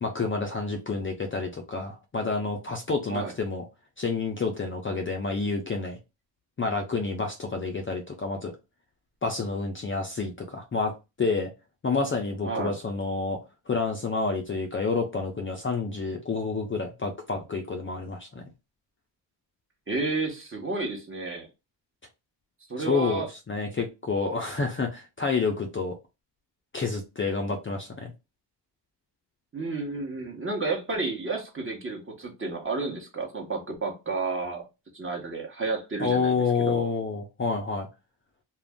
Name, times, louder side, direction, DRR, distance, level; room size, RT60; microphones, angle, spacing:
voice 1, 0.0-3.6 4.0-6.0 6.6-8.5 9.2-11.5 11.8-13.4 13.7-18.4 22.8-26.0 26.7-28.1 36.0-37.9, left 4 dB, 25° left, 0.5 m, -29 dB
voice 2, 12.4-12.8 19.9-21.5 22.7-23.3 29.5-34.6 34.9-36.8, right 3 dB, 25° right, 1.0 m, -31 dB
2.5 x 2.1 x 3.5 m
cardioid pair, 80°, 46 cm